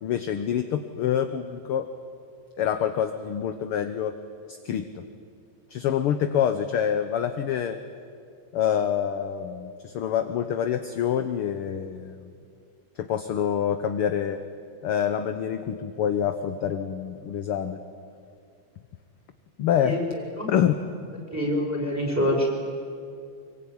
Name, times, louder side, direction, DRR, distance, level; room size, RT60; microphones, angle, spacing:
voice 1, 0.0-1.9 2.6-4.1 4.5-5.0 5.7-7.8 8.5-12.3 13.0-14.4 14.8-17.8 19.6-20.0 20.5-20.7, left 9 dB, 65° left, 8 dB, 1.5 m, -26 dB
voice 2, 21.3-22.5, equal, 5° right, 0 dB, 6.0 m, -25 dB
25.0 x 23.0 x 9.7 m, 2.4 s
omnidirectional pair, 3.4 m